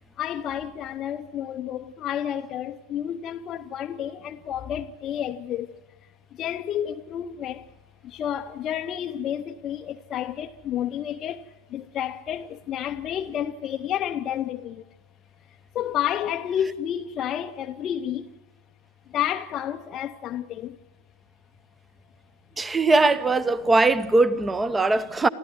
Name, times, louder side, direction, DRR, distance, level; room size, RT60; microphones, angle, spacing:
voice 1, 0.2-7.7 8.0-14.9 15.7-18.3 19.1-20.8, left 10 dB, 30° left, 0.7 m, -30 dB
voice 2, 22.6-25.3, right 3 dB, 10° right, 0.9 m, -20 dB
28.0 x 14.5 x 9.6 m
figure-of-eight pair, 90°, 0 cm